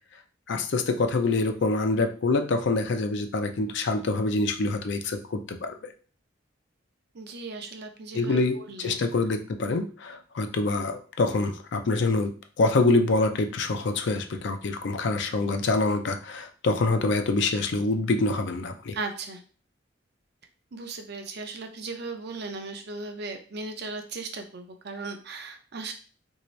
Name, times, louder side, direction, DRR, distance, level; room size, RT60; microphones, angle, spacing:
voice 1, 0.5-5.7 8.1-12.3 12.6-18.9, left 3 dB, 65° left, 6 dB, 0.5 m, -25 dB
voice 2, 7.1-9.0 18.9-19.4 20.7-25.9, right 3 dB, 60° right, 5 dB, 0.6 m, -37 dB
3.4 x 2.7 x 3.1 m, 0.40 s
head